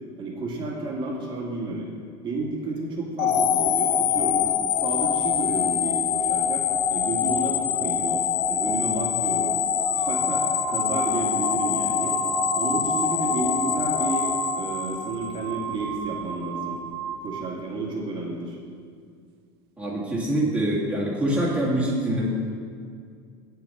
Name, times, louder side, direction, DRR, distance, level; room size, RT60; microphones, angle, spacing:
voice 1, 0.2-1.9 2.2-4.4 4.7-9.6 9.9-12.2 12.5-16.8 17.2-18.6, right 2 dB, 40° right, -2 dB, 2.0 m, -31 dB
sound 1, 3.2-15.4, left 8 dB, 50° left, 0.6 m, -24 dB
sound 2, 8.9-9.1 9.8-17.6, right 9 dB, 90° right, 0.4 m, -33 dB
voice 2, 19.8-22.2, right 1 dB, 10° right, -8 dB, 1.8 m, -24 dB
7.4 x 6.0 x 5.5 m, 2.2 s
supercardioid pair, 130°, 13 cm